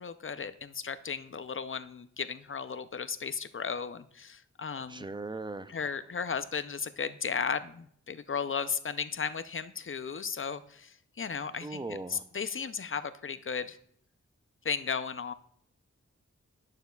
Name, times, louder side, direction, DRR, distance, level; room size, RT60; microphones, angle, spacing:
voice 1, 0.0-5.0 5.7-13.8 14.6-15.3, left 6 dB, 45° left, 12 dB, 0.5 m, -35 dB
voice 2, 4.9-5.8 11.5-12.2, right 3 dB, 15° right, 12 dB, 0.5 m, -39 dB
11.5 x 6.6 x 2.3 m, 0.65 s
cardioid pair, 40°, 30 cm